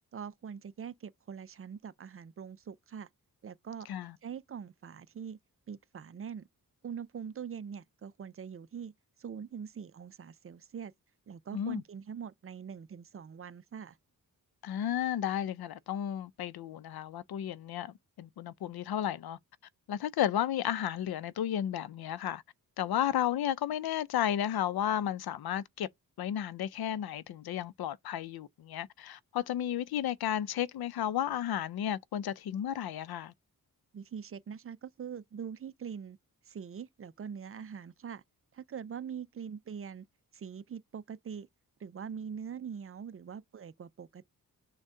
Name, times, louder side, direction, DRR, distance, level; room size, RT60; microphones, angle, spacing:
voice 1, 0.1-3.1 3.4-3.9 4.2-5.4 5.7-6.5 6.8-8.9 9.2-10.9 11.3-14.0 33.9-36.2 36.5-38.2 38.5-40.0 40.3-41.5 41.8-44.2, right 7 dB, 40° right, 0.4 m, -43 dB
voice 2, 14.6-19.4 19.9-22.4 22.8-25.9 26.2-33.3, left 10 dB, 90° left, 0.5 m, -33 dB
6.4 x 2.2 x 3.6 m
wide cardioid pair, 135°, 36 cm